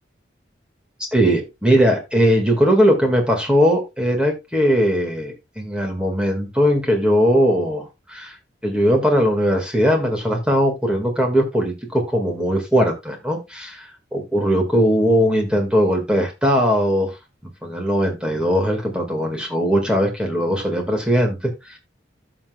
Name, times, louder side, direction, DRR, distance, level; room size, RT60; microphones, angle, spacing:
voice 1, 1.1-8.4 8.6-17.1 17.6-21.8, equal, 5° right, 2 dB, 1.8 m, -19 dB
14.5 x 6.0 x 2.3 m, 0.23 s
head